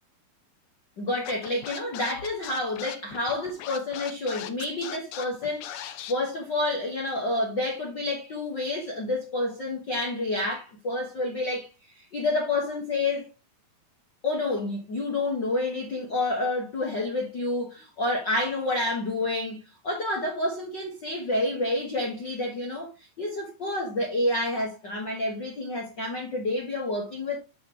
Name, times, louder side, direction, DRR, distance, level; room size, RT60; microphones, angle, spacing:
voice 1, 1.0-13.3 14.2-27.4, left 2 dB, 60° left, 1.1 m, -29 dB
Scratching (performance technique), 1.3-6.1, left 11 dB, 80° left, 2.4 m, -38 dB
8.3 x 6.2 x 2.9 m
omnidirectional pair, 4.3 m